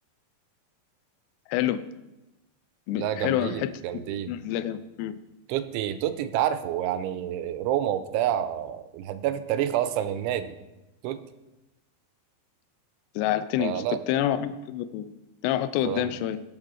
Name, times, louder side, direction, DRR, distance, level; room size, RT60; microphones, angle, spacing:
voice 1, 1.5-1.8 2.9-5.2 13.2-13.7 14.1-15.1 15.4-16.4, left 12 dB, 85° left, 11 dB, 2.4 m, -28 dB
voice 2, 3.0-4.3 5.5-10.5 11.0-11.2 13.6-14.0 15.9-16.1, right 11 dB, 85° right, 12 dB, 2.9 m, -28 dB
17.5 x 6.5 x 4.8 m, 1.0 s
omnidirectional pair, 5.4 m